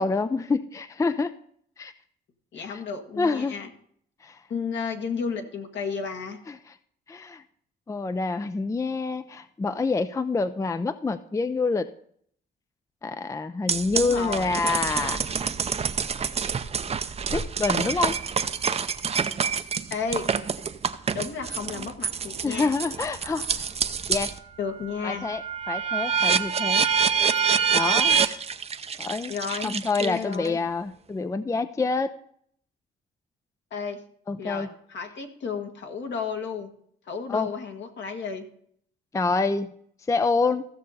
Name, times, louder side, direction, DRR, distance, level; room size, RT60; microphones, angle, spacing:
voice 1, 0.0-1.3 1.8-1.9 2.7-2.8 3.2-3.6 4.2-4.4 6.5-6.6 7.1-7.4 7.9-11.9 13.0-15.2 17.3-18.2 22.4-23.7 24.1-24.4 25.0-26.9 27.7-28.2 29.0-29.3 29.6-32.1 34.3-34.7 37.3-37.5 39.1-39.7 40.1-40.6, left 4 dB, 15° left, 12 dB, 0.4 m, -27 dB
voice 2, 2.5-3.7 4.5-6.4 13.9-14.5 19.9-20.3 21.1-22.7 24.6-25.3 29.3-29.7 30.0-30.6 33.7-34.0 34.4-36.7 37.0-38.4, left 5 dB, 65° left, 4 dB, 1.6 m, -32 dB
sound 1, 13.7-24.4 24.8-30.5, right 6 dB, 30° right, 0.6 m, -26 dB
15.0 x 6.5 x 4.1 m, 0.64 s
cardioid pair, 90°, 20 cm